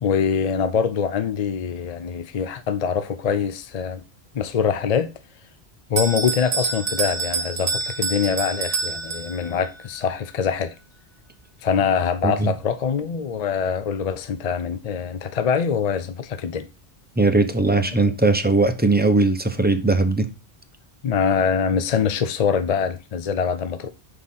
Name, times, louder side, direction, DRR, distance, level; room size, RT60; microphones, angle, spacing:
voice 1, 0.0-4.0 4.3-5.1 5.9-10.7 11.6-16.7 21.0-23.9, left 7 dB, 50° left, 0.4 m, -24 dB
Bell, 6.0-9.7, right 4 dB, 60° right, 1.0 m, -27 dB
voice 2, 17.2-20.3, right 3 dB, 10° right, 0.6 m, -19 dB
6.4 x 4.8 x 5.5 m
omnidirectional pair, 1.1 m